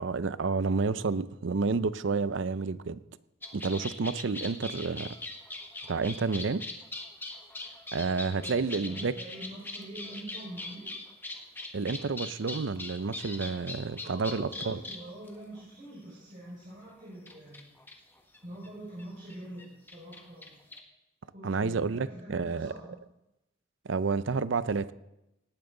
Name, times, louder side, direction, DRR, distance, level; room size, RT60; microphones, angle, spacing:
voice 1, 0.0-3.0 3.5-5.1 5.9-6.6 7.9-9.1 11.7-14.8 21.4-22.7 23.8-24.9, right 4 dB, 70° right, 15 dB, 0.5 m, -30 dB
sound 1, 3.4-15.6 16.7-16.8 17.3-18.7 19.0-19.1 19.3-20.8, left 2 dB, 10° left, 1.4 m, -41 dB
voice 2, 8.3-10.9 14.0-17.6 18.4-20.6 21.3-23.0, right 1 dB, 45° right, -7 dB, 5.1 m, -45 dB
18.5 x 12.5 x 3.9 m, 0.89 s
head